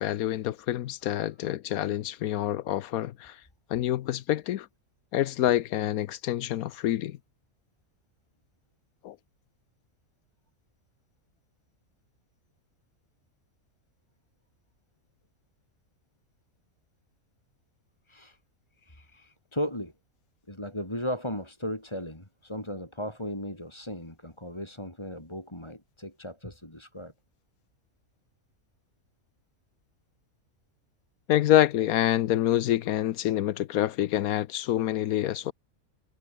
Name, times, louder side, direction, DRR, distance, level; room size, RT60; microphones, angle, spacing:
voice 1, 0.0-3.4 3.7-4.7 5.1-7.2 9.0-9.2 31.3-35.5, left 13 dB, 80° left, 1.1 m, -26 dB
voice 2, 18.1-18.4 18.8-19.9 20.5-27.1, equal, 20° left, 5.5 m, -36 dB
omnidirectional pair, 1.5 m